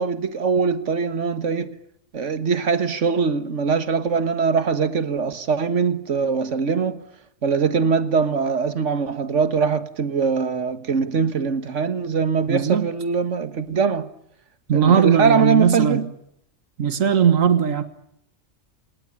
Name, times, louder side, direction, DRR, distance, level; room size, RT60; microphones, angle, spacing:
voice 1, 0.0-1.8 2.1-7.0 7.4-14.1 14.7-16.1, right 5 dB, 70° right, 1.8 m, -22 dB
voice 2, 12.5-12.9 14.7-16.0 16.8-17.8, right 7 dB, 90° right, 1.9 m, -18 dB
28.0 x 19.0 x 9.9 m
omnidirectional pair, 1.3 m